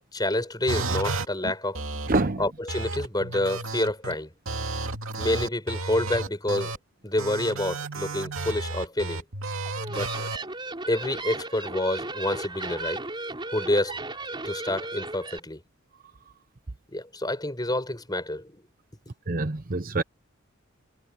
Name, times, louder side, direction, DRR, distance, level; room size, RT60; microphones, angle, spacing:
voice 1, 0.1-1.8 2.4-4.3 5.2-6.7 7.0-9.2 9.9-10.1 10.9-13.0 13.5-14.0 14.4-15.6 16.9-18.5, left 1 dB, 20° left, 5.4 m, -28 dB
sound 1, 0.7-1.2 1.7-2.2 2.7-4.1 4.5-6.8 7.2-10.4, right 3 dB, 75° right, 2.5 m, -32 dB
voice 2, 2.1-2.4 19.3-20.0, right 2 dB, 40° right, 0.8 m, -25 dB
sound 2, 9.6-15.4, right 3 dB, 20° right, 4.4 m, -35 dB
head